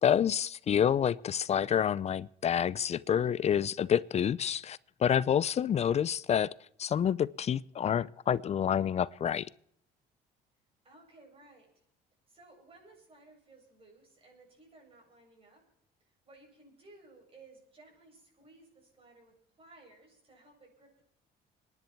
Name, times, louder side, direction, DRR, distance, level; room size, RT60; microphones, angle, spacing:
voice 1, 0.0-6.5 6.8-9.5, left 9 dB, 40° left, 0.6 m, -28 dB
voice 2, 10.8-11.7 12.3-15.6 16.0-21.0, right 2 dB, 35° right, 7.7 m, -58 dB
25.5 x 10.5 x 4.5 m
cardioid pair, 110°, 17 cm